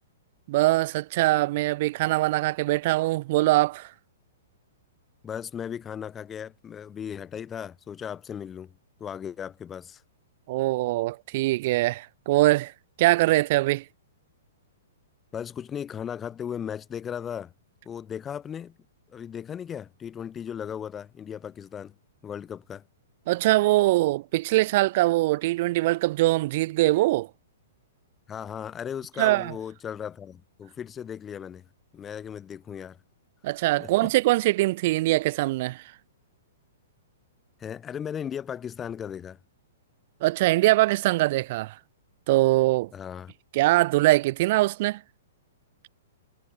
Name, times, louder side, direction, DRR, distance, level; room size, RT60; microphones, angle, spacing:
voice 1, 0.5-3.9 10.5-12.7 13.0-13.8 23.3-27.3 29.2-29.5 33.4-35.8 40.2-41.7 42.3-42.9 43.5-45.0, right 18 dB, 35° right, 0.3 m, -22 dB
voice 2, 5.2-8.7 9.0-10.0 15.3-17.5 17.9-18.8 19.1-21.9 22.2-22.8 28.3-31.7 31.9-33.0 33.8-34.1 37.6-39.4 42.9-43.3, left 8 dB, 10° left, 0.7 m, -36 dB
hypercardioid pair, 175°, 0 cm